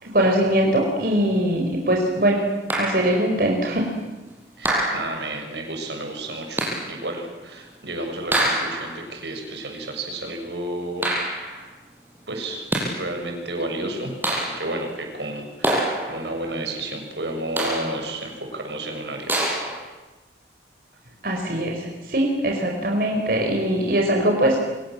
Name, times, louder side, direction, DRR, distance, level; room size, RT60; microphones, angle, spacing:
voice 1, 0.0-2.4 2.7-3.9 21.2-24.6, right 1 dB, 55° right, 1 dB, 4.8 m, -21 dB
sound 1, 2.7-3.3 4.6-5.4 6.6-7.0 8.3-9.0 11.0-11.6 12.5-13.1 14.2-14.8 15.6-16.4 17.6-18.1 19.3-19.9, right 1 dB, 10° right, 6.7 m, -26 dB
voice 2, 4.6-11.1 12.3-14.1 14.6-19.3, right 1 dB, 80° right, 3 dB, 6.9 m, -31 dB
29.0 x 26.0 x 7.7 m, 1.1 s
head